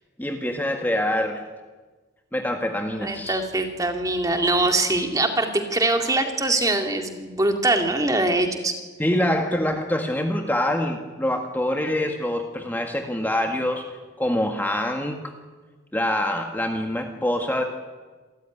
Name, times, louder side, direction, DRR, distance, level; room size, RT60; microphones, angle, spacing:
voice 1, 0.2-1.4 2.3-3.4 9.0-13.8 14.2-15.3 15.9-17.6, left 1 dB, 10° left, 3 dB, 1.6 m, -25 dB
voice 2, 3.0-8.8, right 2 dB, 20° right, 4 dB, 2.3 m, -23 dB
27.5 x 14.5 x 9.7 m, 1.3 s
head